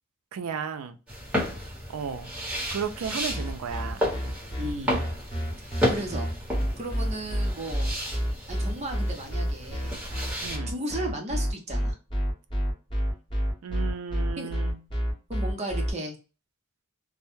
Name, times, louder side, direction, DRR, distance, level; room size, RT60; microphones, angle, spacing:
voice 1, 0.3-1.0 1.9-2.3 2.7-4.0 10.4-10.7 13.6-14.8, right 6 dB, 80° right, 10 dB, 0.4 m, -34 dB
sound 1, 1.1-10.6, equal, 5° right, 0.9 m, -33 dB
sound 2, 3.3-15.9, equal, 25° left, 1.0 m, -28 dB
voice 2, 4.6-5.0 5.9-6.3 6.8-7.9 8.5-10.0 10.7-12.0 14.4-14.5 15.3-16.2, right 1 dB, 30° right, 2 dB, 0.6 m, -34 dB
2.1 x 2.1 x 3.0 m, 0.33 s
head